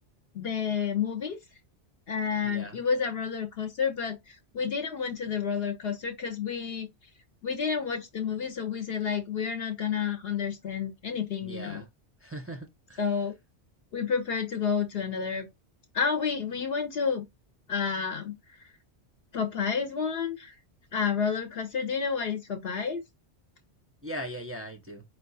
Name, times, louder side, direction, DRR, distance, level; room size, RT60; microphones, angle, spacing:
voice 1, 0.3-1.4 2.1-6.9 7.4-11.8 13.0-13.3 13.9-15.5 15.9-17.3 17.7-18.7 19.3-20.6 20.9-23.0, left 6 dB, 65° left, 0.9 m, -30 dB
voice 2, 2.4-2.8 11.4-11.9 12.2-13.0 24.0-25.0, equal, 20° right, 0.5 m, -39 dB
4.7 x 2.3 x 3.9 m
omnidirectional pair, 1.2 m